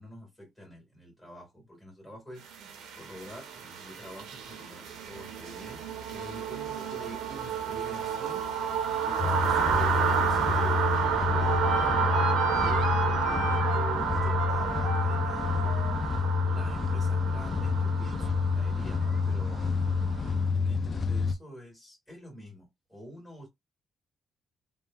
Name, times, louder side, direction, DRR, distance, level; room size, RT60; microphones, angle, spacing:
voice 1, 0.0-2.6 2.9-8.5 9.0-12.1 12.4-15.9 16.4-19.6 20.4-23.5, equal, 5° left, 1.6 m, -46 dB
sound 1, 2.5-20.3, right 7 dB, 90° right, 0.6 m, -31 dB
sound 2, 9.2-21.3, left 5 dB, 40° left, 0.4 m, -29 dB
sound 3, 9.8-15.9, left 4 dB, 90° left, 0.6 m, -38 dB
2.9 x 2.2 x 2.3 m
cardioid pair, 90°, 0 cm